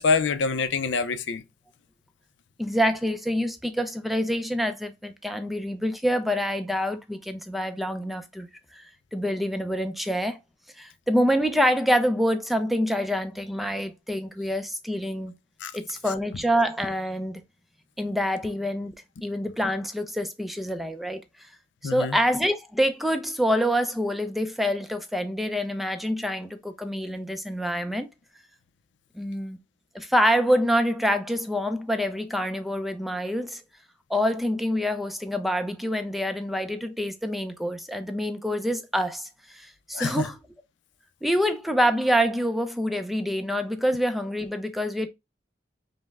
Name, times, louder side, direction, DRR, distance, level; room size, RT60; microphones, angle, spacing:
voice 1, 0.0-1.4 15.6-15.7 21.8-22.2 39.9-40.3, left 4 dB, 85° left, 0.5 m, -25 dB
voice 2, 2.6-8.9 9.1-10.4 10.8-15.3 15.7-17.4 18.0-18.9 19.2-21.2 21.8-28.1 29.2-29.6 29.9-33.6 34.1-40.3 41.2-45.1, equal, ahead, 0.4 m, -26 dB
5.3 x 2.1 x 3.4 m
head